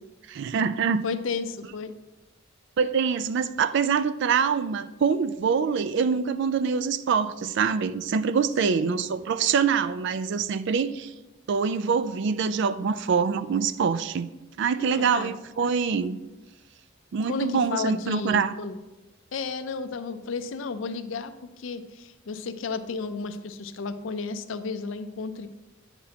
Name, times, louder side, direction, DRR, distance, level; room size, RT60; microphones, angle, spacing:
voice 1, 0.3-1.0 2.8-11.1 11.5-14.3 14.6-16.2 17.1-18.5, right 6 dB, 60° right, 14 dB, 0.4 m, -25 dB
voice 2, 1.0-1.9 8.6-9.0 14.8-15.3 17.3-18.8 19.3-25.5, left 4 dB, 70° left, 10 dB, 0.5 m, -33 dB
9.5 x 6.0 x 2.8 m, 1.1 s
head